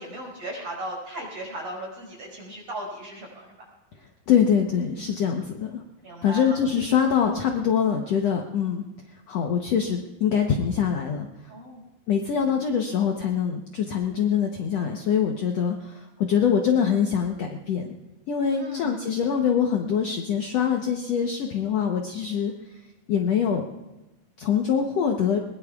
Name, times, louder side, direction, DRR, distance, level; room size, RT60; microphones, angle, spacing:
voice 1, 0.0-3.7 5.1-5.2 6.0-6.6 11.5-11.9 18.5-19.2, right 1 dB, 45° right, -2 dB, 6.6 m, -37 dB
voice 2, 4.3-5.8 6.2-8.8 9.3-11.3 12.1-17.9 18.3-22.5 23.1-23.6 24.4-25.4, left 7 dB, 80° left, 3 dB, 1.4 m, -24 dB
21.5 x 21.0 x 2.4 m, 1.0 s
omnidirectional pair, 4.3 m